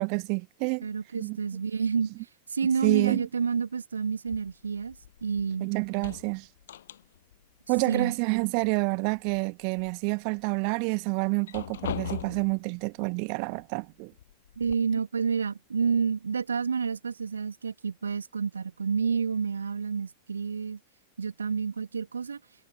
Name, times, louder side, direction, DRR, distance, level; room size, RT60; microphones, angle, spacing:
voice 1, 0.0-0.9 1.1-1.4 2.8-3.3 5.6-6.5 7.7-14.1, right 40 dB or more, 45° right, 1.1 m, -28 dB
voice 2, 0.8-2.1 2.5-5.0 5.2-5.7 7.9-8.1 14.6-20.8 21.2-22.4, right 6 dB, 75° right, 1.3 m, -29 dB
sound 1, 4.3-5.5 5.8-7.4 7.7-8.7 9.1-9.9 10.4-10.5 11.2-12.6 13.6-13.7 14.1-14.7, left 11 dB, 60° left, 8.0 m, -40 dB
figure-of-eight pair, 90°, 0 cm